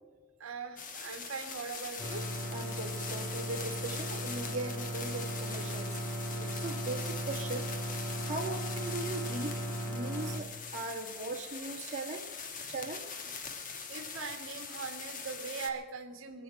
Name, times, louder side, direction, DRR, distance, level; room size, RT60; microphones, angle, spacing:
voice 1, 0.4-2.3 6.3-6.5 12.6-12.7 13.5-16.4, right 5 dB, 70° right, 4 dB, 1.4 m, -41 dB
sound 1, 0.8-15.7, left 5 dB, 40° left, 1.4 m, -42 dB
sound 2, 2.0-10.4, right 1 dB, 10° left, 1.8 m, -37 dB
voice 2, 2.5-6.3 6.6-7.7 8.2-9.5 9.9-12.3 12.7-13.1, right 2 dB, 35° right, 0 dB, 2.1 m, -39 dB
23.5 x 7.9 x 5.7 m, 1.4 s
head